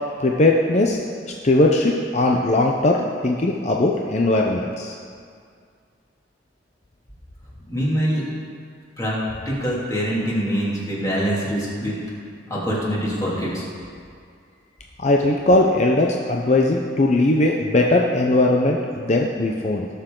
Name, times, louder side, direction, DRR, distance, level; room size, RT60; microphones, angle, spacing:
voice 1, 0.2-1.0 1.3-4.9 15.0-19.9, left 2 dB, 40° left, 0 dB, 0.6 m, -19 dB
voice 2, 7.7-8.2 9.0-9.2 9.5-11.9 12.5-13.6, equal, 20° left, -6 dB, 2.6 m, -24 dB
18.5 x 6.8 x 3.8 m, 2.2 s
head